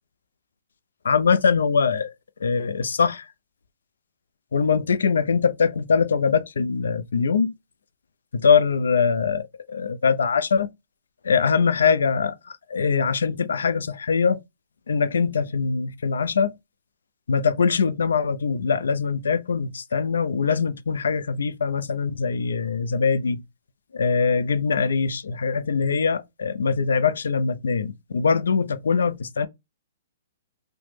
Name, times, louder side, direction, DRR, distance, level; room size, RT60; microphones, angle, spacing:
voice 1, 1.0-2.1 2.4-3.3 4.5-7.5 8.3-10.7 11.2-14.4 14.9-16.5 17.3-23.4 23.9-29.5, left 5 dB, 85° left, 0.4 m, -22 dB
3.0 x 2.0 x 3.1 m
hypercardioid pair, 140°, 0 cm